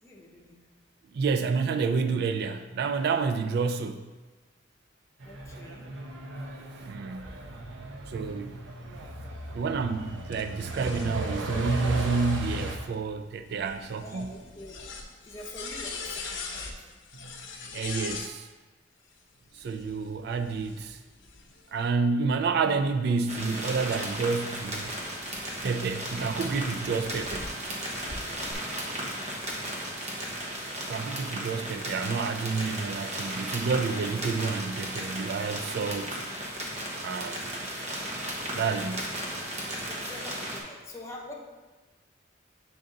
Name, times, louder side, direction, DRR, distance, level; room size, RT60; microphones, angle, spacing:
voice 1, 0.0-0.6 5.2-5.9 14.0-14.8 15.3-16.8 39.9-41.3, left 1 dB, 15° left, 0.9 m, -45 dB
voice 2, 1.1-4.1 6.8-7.4 8.1-8.5 9.5-14.3 17.2-17.3 17.7-18.5 19.5-21.0 21.7-24.9 25.6-27.5 30.8-36.2 37.0-37.7 38.5-39.2, right 4 dB, 60° right, 0.3 m, -29 dB
Truck, 5.2-12.8, right 1 dB, 90° right, 0.7 m, -36 dB
sound 1, 10.3-18.3 19.5-21.8 22.4-27.5 27.9-28.5, left 4 dB, 90° left, 0.8 m, -43 dB
sound 2, 23.3-40.6, right 1 dB, 40° right, 1.0 m, -35 dB
6.9 x 3.8 x 3.8 m
head